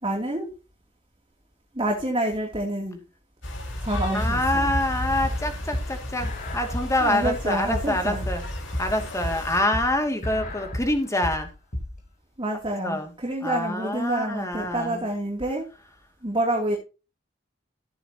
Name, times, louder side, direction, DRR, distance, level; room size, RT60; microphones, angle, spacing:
voice 1, 0.0-0.5 1.7-3.0 3.8-4.7 7.0-8.3 12.4-15.7 16.2-16.8, right 1 dB, 30° right, 2.9 m, -28 dB
sound 1, 3.4-9.6, left 1 dB, 80° left, 5.0 m, -33 dB
voice 2, 4.1-8.4 8.8-11.5 12.8-13.1 13.4-15.1, left 1 dB, 15° left, 2.5 m, -26 dB
sound 2, 4.2-12.0, left 1 dB, 50° left, 3.6 m, -33 dB
14.0 x 9.2 x 3.0 m
head